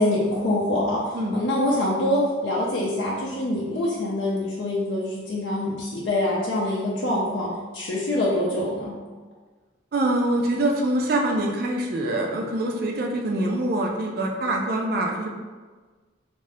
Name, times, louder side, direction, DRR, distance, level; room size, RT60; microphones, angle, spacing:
voice 1, 0.0-7.5 7.7-8.9, left 1 dB, 70° left, -6 dB, 0.5 m, -25 dB
voice 2, 9.9-15.3, right 1 dB, 50° right, 1 dB, 0.4 m, -24 dB
2.6 x 2.5 x 3.2 m, 1.4 s
head